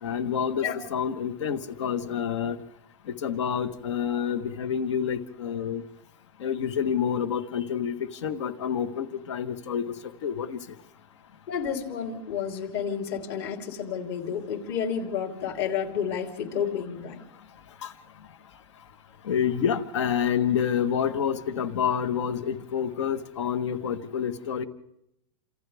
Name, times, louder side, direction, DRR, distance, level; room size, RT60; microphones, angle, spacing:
voice 1, 0.0-2.6 3.1-5.8 6.4-10.6 17.8-17.9 19.2-24.7, left 8 dB, 80° left, 10 dB, 1.6 m, -28 dB
voice 2, 11.5-17.2, left 7 dB, 60° left, 3 dB, 3.9 m, -30 dB
29.0 x 27.0 x 3.6 m, 0.78 s
supercardioid pair, 150°, 15 cm